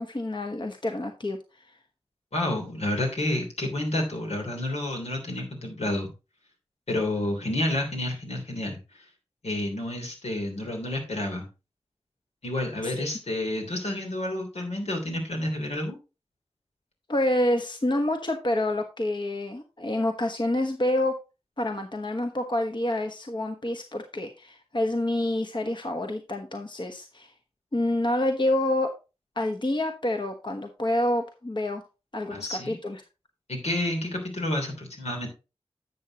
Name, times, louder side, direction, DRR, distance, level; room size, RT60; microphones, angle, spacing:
voice 1, 0.0-1.4 12.8-13.1 17.1-21.1 21.6-27.3 27.7-28.9 29.4-31.8 32.1-33.0, left 1 dB, 45° left, 4 dB, 1.2 m, -27 dB
voice 2, 2.3-6.1 6.9-8.8 9.4-11.5 12.4-16.0 32.3-32.8 33.5-35.3, left 1 dB, 90° left, 1 dB, 3.2 m, -29 dB
11.0 x 7.8 x 2.9 m, 0.29 s
wide cardioid pair, 55°, 11 cm